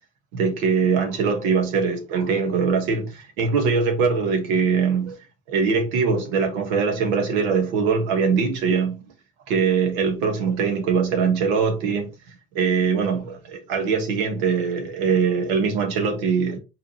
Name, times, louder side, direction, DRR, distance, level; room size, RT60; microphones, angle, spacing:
voice 1, 0.3-5.2 5.5-9.0 9.5-12.1 12.5-16.6, right 5 dB, 90° right, 1.4 m, -22 dB
4.7 x 3.6 x 2.9 m
supercardioid pair, 85°, 40 cm